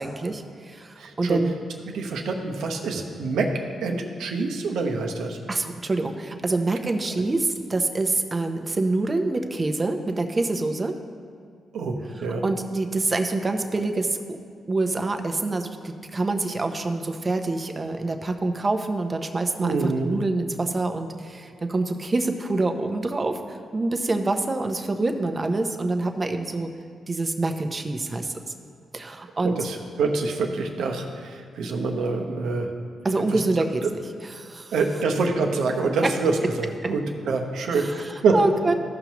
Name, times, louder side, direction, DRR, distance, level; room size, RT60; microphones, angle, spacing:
voice 1, 0.0-1.5 5.5-10.9 12.4-14.2 14.7-26.7 27.1-28.3 28.9-29.5 33.0-33.8 34.2-34.7 37.7-38.7, right 2 dB, 35° right, 6 dB, 0.8 m, -26 dB
voice 2, 1.0-1.4 1.9-3.5 3.8-5.4 7.1-7.2 11.7-12.4 19.6-20.2 29.4-32.7 33.3-33.4 34.7-38.4, right 4 dB, 80° right, 2 dB, 0.9 m, -26 dB
14.5 x 5.6 x 3.0 m, 2.2 s
supercardioid pair, 60°, 0 cm